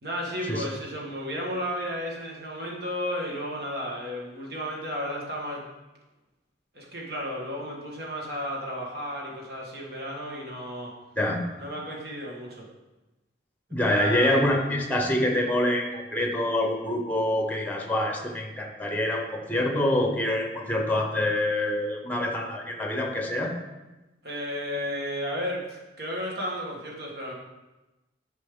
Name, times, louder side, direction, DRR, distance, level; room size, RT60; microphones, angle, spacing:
voice 1, 0.0-5.7 6.7-10.9 11.6-12.7 13.7-14.8 24.2-27.3, equal, 55° right, -2 dB, 1.8 m, -33 dB
voice 2, 11.2-11.5 13.7-23.5, left 1 dB, 10° left, 2 dB, 1.0 m, -26 dB
10.0 x 5.4 x 3.9 m, 1.1 s
head